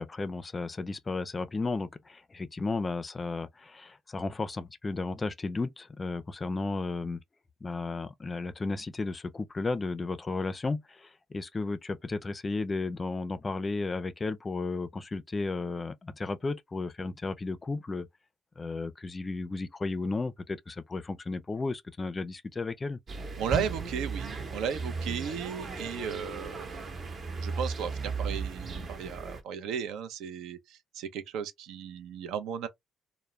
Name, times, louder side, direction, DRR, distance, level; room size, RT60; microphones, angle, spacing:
voice 1, 0.0-7.2 7.6-18.1 18.6-23.0, left 3 dB, 30° left, 0.4 m, -34 dB
sound 1, 23.1-29.4, right 4 dB, 45° right, 0.8 m, -36 dB
voice 2, 23.4-26.9 27.4-32.7, right 7 dB, 80° right, 0.5 m, -35 dB
2.3 x 2.0 x 3.0 m
supercardioid pair, 70°, 0 cm